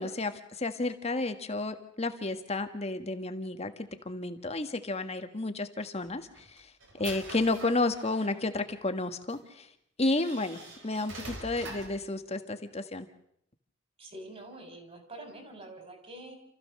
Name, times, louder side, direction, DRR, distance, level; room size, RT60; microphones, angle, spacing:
voice 1, 0.0-6.7 7.0-9.7 10.0-13.1, left 2 dB, 35° left, 8 dB, 1.5 m, -32 dB
sound 1, 6.0-8.4 9.3-9.4 10.0-12.0, right 2 dB, 70° right, 4.4 m, -45 dB
voice 2, 14.0-16.4, right 1 dB, 35° right, 5 dB, 4.6 m, -46 dB
28.5 x 15.0 x 6.6 m, 0.75 s
head